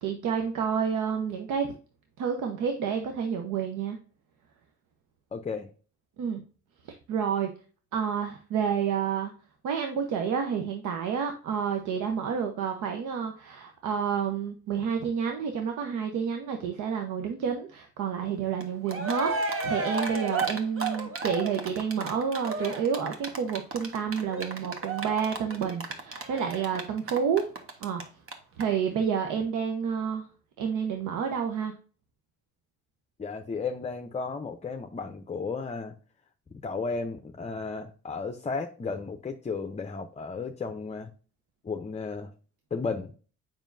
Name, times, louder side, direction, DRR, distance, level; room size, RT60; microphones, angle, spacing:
voice 1, 0.0-1.7 2.2-4.0 6.2-6.4 7.1-7.5 7.9-9.3 9.6-27.4 27.8-28.0 28.6-30.3 30.6-31.7, right 7 dB, 85° right, 4 dB, 0.9 m, -29 dB
voice 2, 5.3-5.7 33.2-35.9 36.6-41.1 41.6-42.3 42.7-43.1, left 4 dB, 20° left, 6 dB, 0.6 m, -34 dB
Cheering, 18.6-18.7 18.9-28.0 28.3-28.4 28.6-28.7, right 3 dB, 45° right, 1.3 m, -32 dB
7.2 x 5.4 x 2.6 m, 0.38 s
cardioid pair, 90°, 30 cm